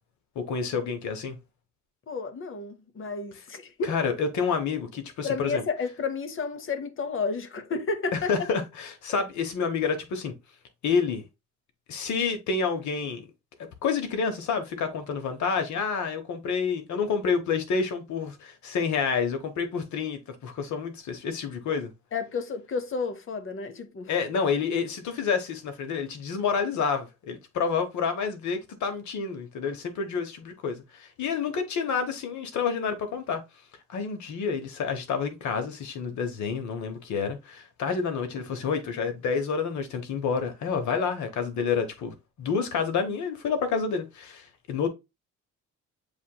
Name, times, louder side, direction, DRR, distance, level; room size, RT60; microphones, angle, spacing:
voice 1, 0.3-1.4 3.8-5.6 8.1-10.3 10.8-11.2 11.9-13.3 13.8-21.9 24.1-33.4 33.9-44.9, left 5 dB, 70° left, 1.2 m, -29 dB
voice 2, 2.1-3.9 5.2-8.3 22.1-24.1, left 4 dB, 45° left, 0.8 m, -31 dB
7.1 x 2.9 x 2.2 m
cardioid pair, 90°, 30 cm